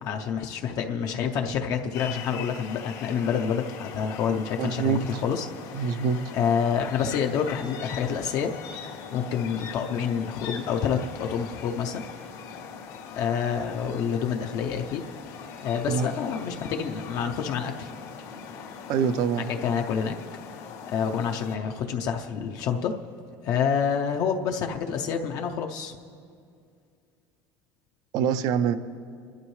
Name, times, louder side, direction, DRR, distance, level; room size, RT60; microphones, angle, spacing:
voice 1, 0.0-5.5 5.7-6.1 6.3-8.5 9.1-12.0 13.2-15.0 15.6-17.9 19.4-20.1 20.9-22.9 23.4-25.9, left 7 dB, 50° left, 3 dB, 0.6 m, -28 dB
sound 1, 1.9-21.6, left 7 dB, 90° left, 2.4 m, -41 dB
voice 2, 4.6-5.2 5.7-6.3 15.9-16.1 18.9-19.5 28.1-28.7, right 6 dB, 55° right, 13 dB, 0.6 m, -25 dB
25.5 x 12.0 x 3.2 m, 2.3 s
cardioid pair, 175°, 8 cm